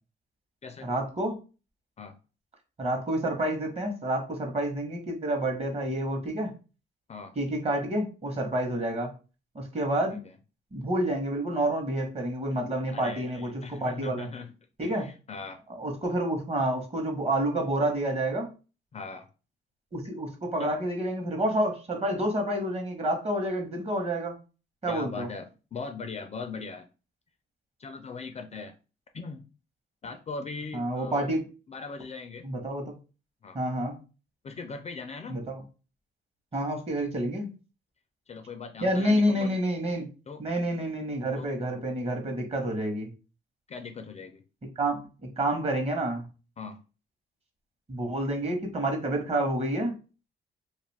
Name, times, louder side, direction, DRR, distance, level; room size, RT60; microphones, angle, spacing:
voice 1, 0.8-1.4 2.8-6.5 7.4-9.1 9.5-10.2 10.7-14.3 14.8-15.1 15.7-18.5 19.9-24.3 24.8-25.3 30.7-31.4 32.4-32.8 33.5-34.0 35.3-35.6 36.5-37.5 38.8-40.1 40.4-43.1 44.8-45.0 45.4-46.3 47.9-50.0, right 1 dB, 30° right, 4 dB, 0.9 m, -29 dB
voice 2, 12.9-14.5 14.8-15.6 18.9-19.3 20.6-20.7 24.9-26.9 27.8-28.8 29.1-29.4 30.0-31.3 31.7-32.5 33.4-33.6 34.4-35.4 38.3-39.6 40.3-40.4 41.4-41.5 43.7-44.4 46.6-46.8, left 4 dB, 35° left, 7 dB, 0.4 m, -39 dB
2.4 x 2.4 x 3.2 m, 0.33 s
cardioid pair, 90°, 20 cm